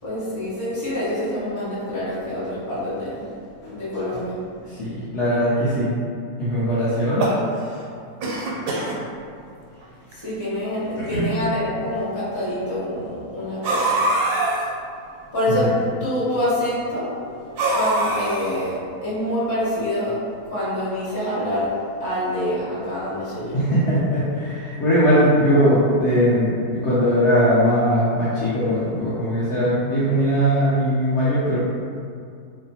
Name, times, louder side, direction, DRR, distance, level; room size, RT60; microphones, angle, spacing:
voice 1, 0.0-4.4 10.1-13.9 15.3-15.7 16.0-20.2 20.4-21.7 22.0-23.6, left 1 dB, 20° left, -11 dB, 0.6 m, -26 dB
voice 2, 4.7-5.9 6.4-7.3 11.0-11.3 23.5-26.5 26.8-31.6, equal, 65° left, -9 dB, 0.7 m, -20 dB
sound 1, 6.9-7.8 8.2-9.0 9.8-9.9 10.1-10.2 11.2-11.3 13.6-14.7 17.6-18.7, right 2 dB, 90° right, 1.1 m, -23 dB
2.8 x 2.0 x 2.7 m, 2.4 s
omnidirectional pair, 1.6 m